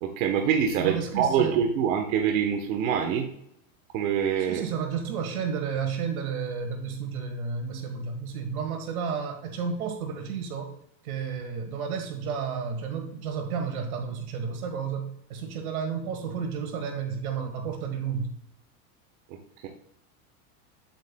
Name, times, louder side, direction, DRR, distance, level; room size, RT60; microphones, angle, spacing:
voice 1, 0.0-3.3 3.9-4.7 19.3-19.4 19.6-19.7, right 8 dB, 70° right, 3 dB, 1.2 m, -25 dB
voice 2, 0.8-1.6 4.4-10.7 11.0-18.3, right 6 dB, 85° right, 6 dB, 1.5 m, -32 dB
8.6 x 8.0 x 2.2 m, 0.72 s
supercardioid pair, 125°, 42 cm